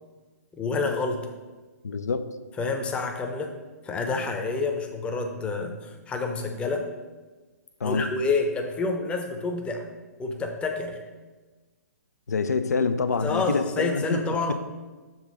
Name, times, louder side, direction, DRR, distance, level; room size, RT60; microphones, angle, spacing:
voice 1, 0.5-1.3 2.6-3.5 3.8-6.9 7.8-9.8 10.2-11.0 13.2-14.5, left 3 dB, 10° left, 4 dB, 0.7 m, -28 dB
voice 2, 1.8-2.3 7.8-8.1 12.3-14.2 14.5-14.6, left 4 dB, 70° left, 11 dB, 0.5 m, -26 dB
7.2 x 3.6 x 6.1 m, 1.3 s
figure-of-eight pair, 125°, 9 cm